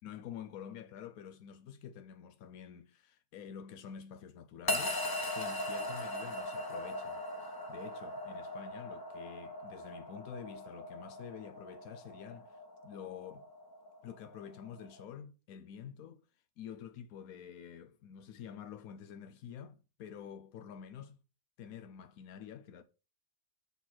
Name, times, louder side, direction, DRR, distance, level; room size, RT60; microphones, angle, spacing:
voice 1, 0.0-5.0 5.3-13.5 14.0-16.3 16.6-21.2 21.6-22.8, left 8 dB, 85° left, 1.2 m, -48 dB
sound 1, 4.7-15.0, left 1 dB, 20° left, 1.0 m, -40 dB
6.3 x 5.3 x 5.8 m
omnidirectional pair, 1.5 m